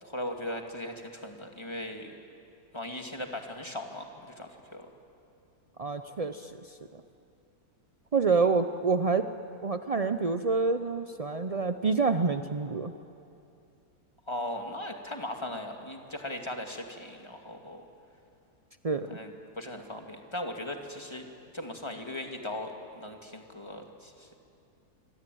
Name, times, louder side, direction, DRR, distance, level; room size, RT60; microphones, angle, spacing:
voice 1, 0.0-2.2 2.7-4.9 14.3-17.8 19.1-21.3 21.5-24.4, left 1 dB, 15° left, 3 dB, 2.3 m, -38 dB
voice 2, 5.8-6.4 8.1-9.2 9.6-12.9 18.8-19.1, right 4 dB, 65° right, 9 dB, 0.3 m, -27 dB
26.0 x 24.5 x 9.3 m, 2.6 s
omnidirectional pair, 1.8 m